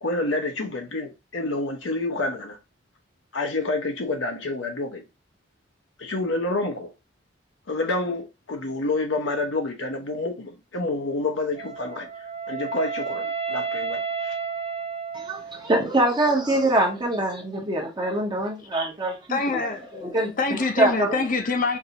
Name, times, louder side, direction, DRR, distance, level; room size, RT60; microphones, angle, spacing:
voice 1, 0.0-2.6 3.3-5.0 6.0-6.9 7.7-12.1 12.5-14.3, left 2 dB, 85° left, 0.9 m, -28 dB
Wind instrument woodwind instrument, 11.6-15.7, right 5 dB, 60° right, 0.9 m, -31 dB
voice 2, 15.1-19.6 20.1-20.3 20.8-21.1, right 1 dB, 25° right, 0.8 m, -24 dB
voice 3, 19.3-21.8, left 3 dB, 45° left, 0.7 m, -26 dB
4.8 x 2.6 x 2.8 m
head